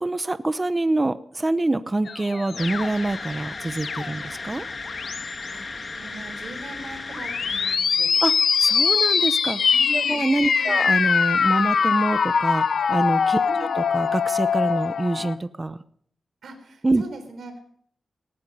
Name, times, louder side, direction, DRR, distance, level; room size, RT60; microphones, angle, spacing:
voice 1, 0.0-4.6 8.2-8.3 8.6-9.6 9.9-13.4 13.8-15.8 16.8-17.0, right 2 dB, 20° right, 13 dB, 0.7 m, -25 dB
sound 1, 2.1-4.3 4.8-5.4 7.1-15.3, left 6 dB, 70° left, 0.9 m, -23 dB
sound 2, 2.6-7.8, left 3 dB, 40° left, 1.6 m, -35 dB
voice 2, 5.5-8.1 9.7-10.3 10.6-10.8 13.5-13.7 16.4-17.6, right 2 dB, 75° right, 7 dB, 3.7 m, -40 dB
18.5 x 13.5 x 5.4 m, 0.62 s
wide cardioid pair, 110°, 0 cm